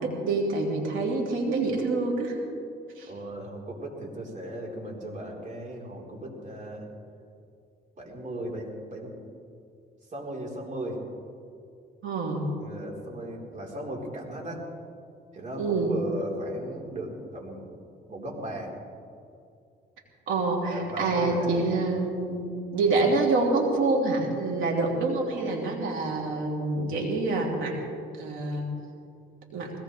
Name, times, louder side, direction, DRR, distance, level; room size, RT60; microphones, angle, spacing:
voice 1, 0.0-2.4 3.0-3.1 12.0-12.4 15.6-15.9 20.3-27.8 28.1-28.7 29.5-29.7, right 3 dB, 85° right, -1 dB, 3.2 m, -26 dB
voice 2, 3.1-6.9 8.0-9.1 10.1-11.0 12.6-14.6 15.3-17.7 18.1-18.7 20.6-21.8, right 1 dB, 40° right, -2 dB, 4.1 m, -37 dB
21.0 x 18.0 x 3.4 m, 2.5 s
cardioid pair, 90°, 20 cm